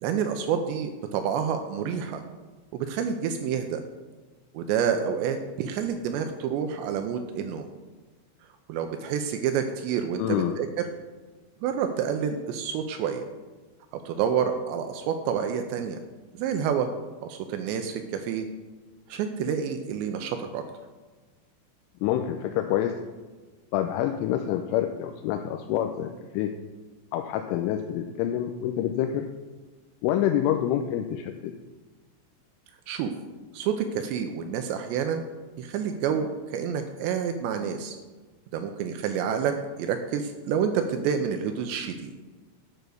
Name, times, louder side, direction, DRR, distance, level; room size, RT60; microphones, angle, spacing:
voice 1, 0.0-2.2 2.7-3.8 4.5-7.7 8.7-10.7 11.6-13.2 13.9-16.0 16.4-16.9 17.2-18.5 19.1-20.6 32.9-33.1 33.5-35.2 35.6-38.0 38.5-42.1, right 7 dB, 85° right, 6 dB, 2.6 m, -28 dB
voice 2, 10.2-10.6 22.0-22.9 23.7-26.5 27.1-29.3 30.0-31.5, left 11 dB, 85° left, 5 dB, 3.1 m, -27 dB
9.2 x 5.9 x 6.5 m, 1.3 s
omnidirectional pair, 5.6 m